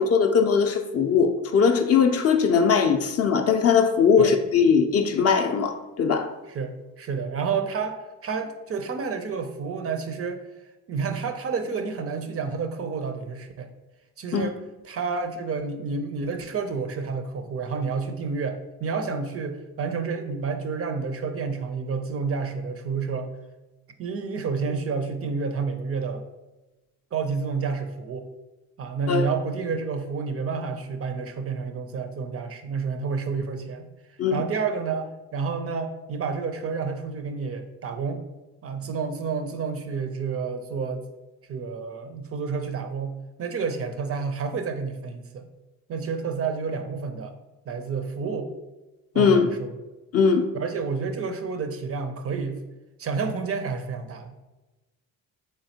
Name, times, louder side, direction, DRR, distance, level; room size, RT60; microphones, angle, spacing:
voice 1, 0.0-6.3 14.3-14.4 29.1-29.3 34.2-34.4 49.2-49.5 50.1-50.4, left 6 dB, 40° left, 6 dB, 0.4 m, -20 dB
voice 2, 6.5-10.4 10.9-13.7 14.2-14.6 14.8-23.3 24.0-26.2 27.1-28.3 28.8-33.9 34.3-38.2 38.6-41.1 41.5-43.1 43.4-45.5 45.9-47.3 47.7-48.5 49.1-49.7 50.5-52.6 53.0-54.3, right 5 dB, 35° right, 7 dB, 0.4 m, -30 dB
3.6 x 3.2 x 2.7 m, 1.1 s
hypercardioid pair, 60°, 41 cm